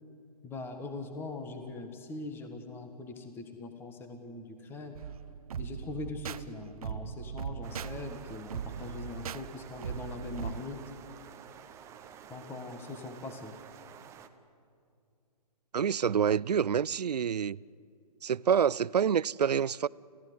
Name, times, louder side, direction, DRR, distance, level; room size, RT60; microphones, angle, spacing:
voice 1, 0.4-5.0 5.6-10.8 12.3-13.5, left 3 dB, 10° left, 1.5 m, -41 dB
sound 1, 4.9-10.6, right 8 dB, 65° right, 0.8 m, -40 dB
sound 2, 7.6-14.3, right 8 dB, 15° right, 0.9 m, -51 dB
voice 2, 15.7-17.6 18.2-19.9, right 8 dB, 90° right, 0.5 m, -27 dB
30.0 x 15.0 x 9.4 m
hypercardioid pair, 145°, 20 cm